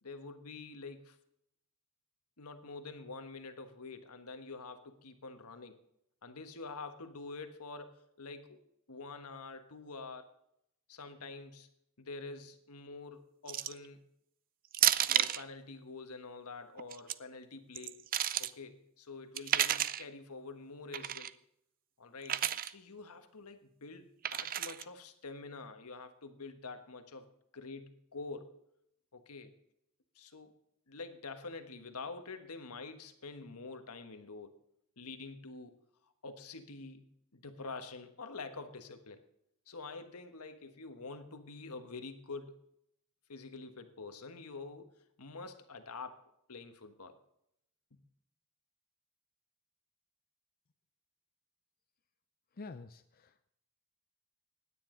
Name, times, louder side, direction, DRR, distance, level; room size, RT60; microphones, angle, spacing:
voice 1, 0.0-1.2 2.4-5.8 6.2-8.6 8.9-10.3 10.9-11.7 12.0-14.1 15.1-18.0 18.4-21.4 22.0-28.6 29.1-29.5 30.1-30.5 30.9-34.6 35.0-35.8 36.2-37.1 37.3-39.2 39.7-42.6 43.3-47.2 47.9-48.0, left 3 dB, 80° left, 8 dB, 1.4 m, -47 dB
sound 1, 13.5-13.9 14.7-15.4 16.8-17.1 17.7-18.5 19.4-20.0 20.9-21.3 22.3-22.7 24.2-24.8, right 11 dB, 40° right, 0.5 m, -31 dB
voice 2, 52.6-53.5, left 3 dB, 40° left, 8 dB, 0.6 m, -48 dB
16.5 x 10.0 x 3.9 m, 0.76 s
head